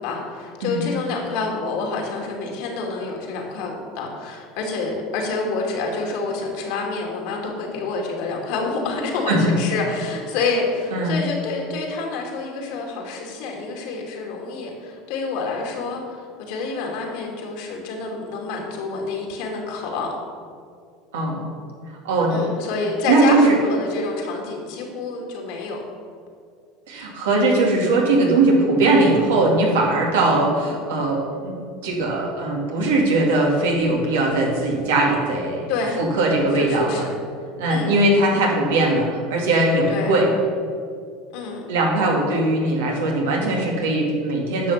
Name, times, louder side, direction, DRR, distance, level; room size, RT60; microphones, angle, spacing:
voice 1, 0.0-16.0 16.5-20.1 22.3-25.8 35.7-36.0 36.5-37.1 37.7-38.0 39.9-40.2 41.3-41.6, left 3 dB, 70° left, 0 dB, 2.5 m, -27 dB
voice 2, 21.1-21.5 22.0-22.4 23.1-23.5 26.9-35.7 36.0-37.0 37.6-40.3 41.7-44.7, right 2 dB, 90° right, -1 dB, 2.3 m, -20 dB
11.0 x 6.2 x 5.8 m, 2.2 s
supercardioid pair, 105°, 0 cm